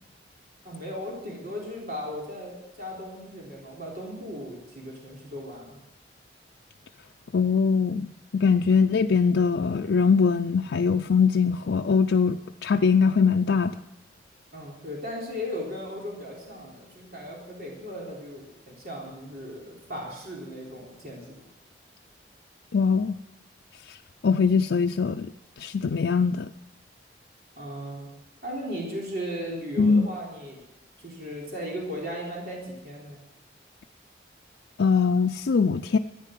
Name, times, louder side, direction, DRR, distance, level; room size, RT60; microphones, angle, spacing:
voice 1, 0.6-5.8 14.5-21.3 27.6-28.1 28.4-30.6 31.0-33.2, equal, 55° right, -3 dB, 3.7 m, -37 dB
voice 2, 7.3-13.7 22.7-23.2 24.2-25.3 25.6-26.5 29.8-30.1 34.8-36.0, left 5 dB, 85° left, 4 dB, 0.4 m, -22 dB
14.0 x 9.9 x 7.6 m, 0.93 s
head